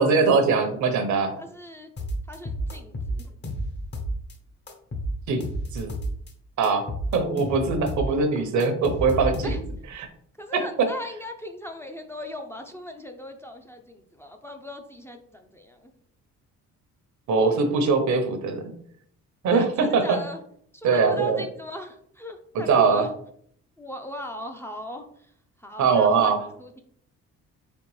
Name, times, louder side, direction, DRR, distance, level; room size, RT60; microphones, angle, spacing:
voice 1, 0.0-1.3 5.3-5.4 5.7-6.0 6.6-6.8 7.1-9.6 9.9-10.1 17.3-18.7 19.4-20.2 20.8-21.4 22.5-23.1 25.8-26.4, right 4 dB, 70° right, 7 dB, 0.9 m, -21 dB
voice 2, 1.4-1.9 2.3-3.4 9.4-9.6 10.4-15.9 19.5-20.4 20.7-23.1 23.8-25.1 25.6-26.8, left 1 dB, 10° left, 4 dB, 0.5 m, -39 dB
sound 1, 2.0-4.3 4.7-6.3 6.6-9.9, equal, 35° left, 0.9 m, -31 dB
4.3 x 3.3 x 3.1 m, 0.65 s
cardioid pair, 90°, 30 cm